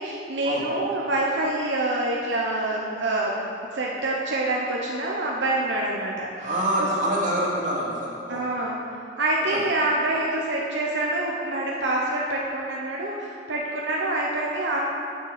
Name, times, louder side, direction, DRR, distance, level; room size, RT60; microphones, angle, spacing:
voice 1, 0.0-3.4 3.7-6.6 8.3-8.8 9.2-14.8, right 2 dB, 80° right, -3 dB, 1.0 m, -26 dB
voice 2, 6.4-8.4 9.5-9.6, right 1 dB, 45° right, -6 dB, 2.5 m, -26 dB
9.7 x 6.6 x 6.8 m, 2.7 s
head